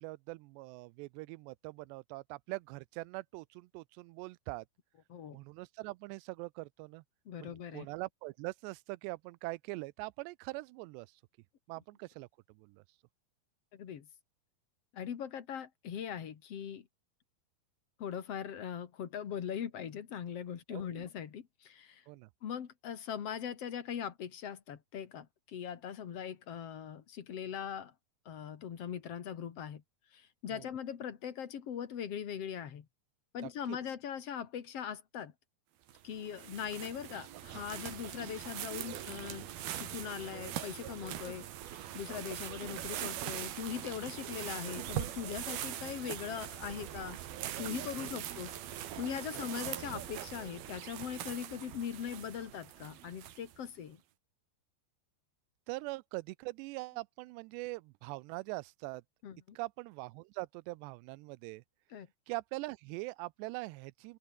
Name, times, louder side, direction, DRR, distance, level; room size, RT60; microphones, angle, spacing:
voice 1, 0.0-4.7 5.3-7.0 7.4-11.1 11.7-12.8 20.7-21.1 22.1-22.3 30.5-30.7 33.4-33.8 48.0-48.2 49.3-49.4 55.7-59.0 59.6-61.6 62.3-64.2, right 23 dB, 90° right, 2.8 m, -43 dB
voice 2, 7.3-7.9 13.7-14.1 14.9-16.9 18.0-22.0 22.4-27.9 28.3-29.8 30.1-32.9 33.3-35.3 36.0-47.2 47.6-54.0 59.2-59.6 61.9-62.1, left 8 dB, 50° left, 2.1 m, -41 dB
sound 1, 35.9-53.7, right 11 dB, 65° right, 3.5 m, -42 dB
open air
omnidirectional pair, 4.9 m